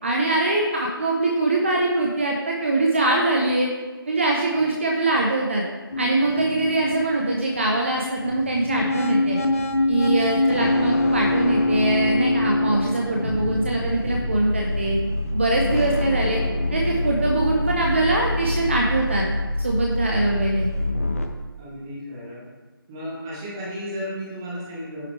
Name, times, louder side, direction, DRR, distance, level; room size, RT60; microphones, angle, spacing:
voice 1, 0.0-3.7 4.1-5.6 6.0-9.4 9.9-15.0 15.3-16.4 16.7-19.2 19.6-20.7, right 2 dB, 30° right, -1 dB, 0.9 m, -23 dB
sound 1, 5.9-21.3, left 2 dB, 35° left, 0.8 m, -25 dB
voice 2, 21.6-22.5 22.9-25.1, equal, 10° right, -5 dB, 1.3 m, -34 dB
10.0 x 6.4 x 3.4 m, 1.3 s
figure-of-eight pair, 175°, 13 cm